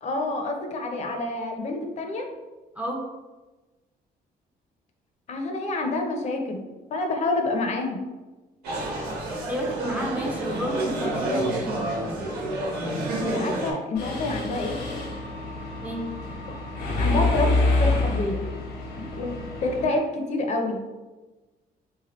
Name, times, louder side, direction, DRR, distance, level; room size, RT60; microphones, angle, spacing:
voice 1, 0.0-2.3 5.3-6.6 6.9-8.0 13.2-14.8 17.0-18.4 19.0-19.4 19.6-20.8, left 2 dB, 45° left, 4 dB, 0.5 m, -28 dB
sound 1, 8.6-13.7, right 1 dB, 90° right, 1.1 m, -29 dB
voice 2, 9.5-11.8 15.8-16.1, right 1 dB, 10° right, 0 dB, 0.4 m, -30 dB
Mechanisms, 13.9-19.9, left 2 dB, 85° left, 0.9 m, -27 dB
3.5 x 2.8 x 2.9 m, 1.2 s
cardioid pair, 155°, 16 cm